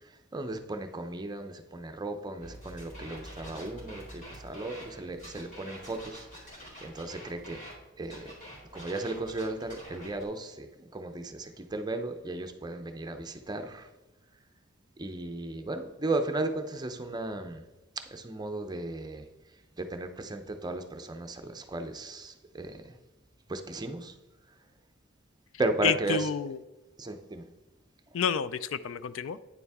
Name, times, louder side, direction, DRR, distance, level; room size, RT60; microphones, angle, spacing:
voice 1, 0.3-6.3 6.8-7.6 8.0-8.3 8.7-10.7 10.9-13.9 15.0-17.6 18.1-19.3 19.8-22.9 23.5-24.1 25.6-26.3 27.0-27.5, right 2 dB, 20° right, 7 dB, 0.6 m, -35 dB
sound 1, 2.4-7.7 8.0-10.2, equal, 40° left, 2.9 m, -46 dB
voice 2, 25.8-26.6 28.1-29.4, left 7 dB, 70° left, 15 dB, 0.4 m, -29 dB
9.4 x 6.9 x 3.6 m, 1.1 s
head